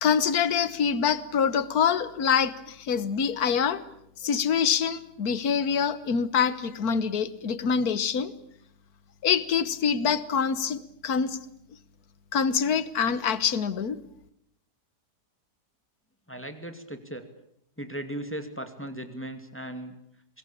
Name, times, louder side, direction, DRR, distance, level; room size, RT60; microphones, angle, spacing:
voice 1, 0.0-3.8 4.2-8.3 9.2-11.4 12.3-14.0, left 7 dB, 60° left, 15 dB, 1.7 m, -25 dB
voice 2, 16.3-17.3 17.8-19.9, right 1 dB, 5° left, 7 dB, 2.2 m, -37 dB
25.0 x 21.5 x 8.7 m, 0.74 s
omnidirectional pair, 1.8 m